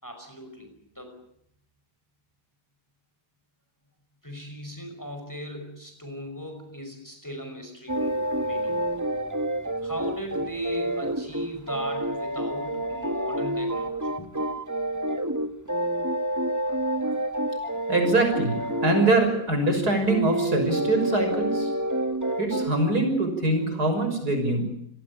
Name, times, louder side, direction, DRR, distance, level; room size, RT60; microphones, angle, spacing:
voice 1, 0.0-1.2 4.2-8.8 9.8-14.3, equal, 10° left, 5 dB, 5.4 m, -38 dB
sound 1, 7.9-19.2 19.9-22.7, right 1 dB, 10° right, 1.5 m, -28 dB
voice 2, 17.9-21.7 22.4-24.7, right 2 dB, 60° right, 5 dB, 6.5 m, -23 dB
28.5 x 18.5 x 8.7 m, 0.72 s
omnidirectional pair, 1.9 m